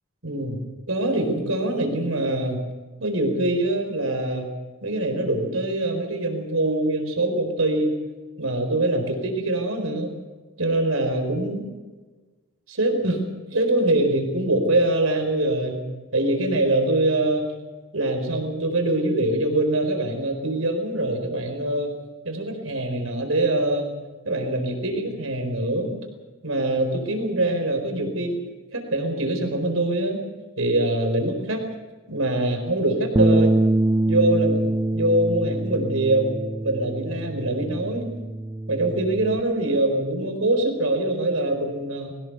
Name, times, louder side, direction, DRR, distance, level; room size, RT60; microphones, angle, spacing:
voice 1, 0.2-0.6 0.9-2.6 3.0-4.5 4.8-7.9 8.4-10.1 10.6-11.7 12.7-13.2 13.5-15.8 16.1-17.5 17.9-21.9 22.2-23.9 24.2-25.9 26.4-28.4 28.7-30.2 30.6-31.6 32.1-33.5 34.1-34.6 34.9-36.4 36.6-38.1 38.7-42.1, right 1 dB, 80° right, 5 dB, 4.4 m, -23 dB
Bass guitar, 33.2-39.4, right 1 dB, 20° right, 0.6 m, -24 dB
21.5 x 18.0 x 6.9 m, 1.3 s
head